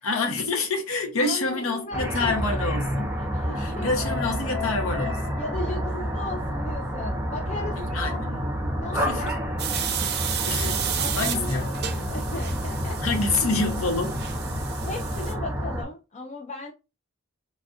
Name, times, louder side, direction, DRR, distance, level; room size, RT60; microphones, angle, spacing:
voice 1, 0.0-3.2 3.6-5.4 7.8-8.5 8.9-9.3 10.5-10.8 11.2-11.9 13.0-14.2, left 3 dB, 85° left, 0.8 m, -27 dB
voice 2, 1.2-2.8 3.2-3.9 5.4-8.2 8.7-9.4 9.8-9.9 10.9-13.2 14.8-16.7, left 2 dB, 35° left, 0.4 m, -36 dB
sound 1, 1.9-15.8, equal, 10° right, 0.7 m, -29 dB
sound 2, 9.6-15.3, right 9 dB, 50° right, 0.5 m, -32 dB
3.3 x 2.3 x 2.7 m
head